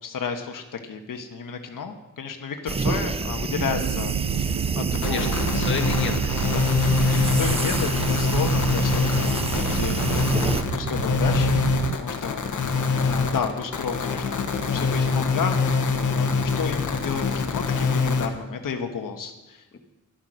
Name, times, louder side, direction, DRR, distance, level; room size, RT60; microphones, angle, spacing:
voice 1, 0.0-5.3 6.4-6.8 7.1-11.7 11.9-19.8, left 6 dB, 85° left, 5 dB, 1.3 m, -32 dB
sound 1, 2.7-10.6, right 4 dB, 20° right, 0.4 m, -29 dB
sound 2, 3.6-12.0, right 10 dB, 85° right, 0.6 m, -29 dB
sound 3, 4.9-18.3, left 4 dB, 70° left, 1.4 m, -24 dB
voice 2, 4.9-6.4 7.1-7.3 19.7-19.8, left 4 dB, 35° left, 3 dB, 1.4 m, -32 dB
12.0 x 12.0 x 6.3 m, 1.0 s
wide cardioid pair, 180°, 32 cm